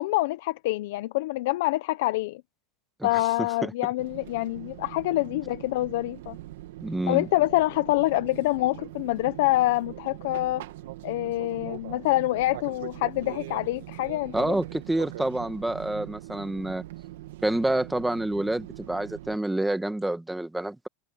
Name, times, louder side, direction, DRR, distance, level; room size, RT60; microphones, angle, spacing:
voice 1, 0.0-2.4 3.0-6.4 7.1-10.6 11.0-14.6, left 18 dB, 60° left, 0.6 m, -26 dB
voice 2, 3.0-3.7 6.8-7.3 14.3-16.8 17.4-20.9, right 1 dB, 5° right, 1.4 m, -28 dB
Fixed-wing aircraft airplane, 4.0-19.4, right 16 dB, 75° right, 1.9 m, -42 dB
supercardioid pair, 175°, 0 cm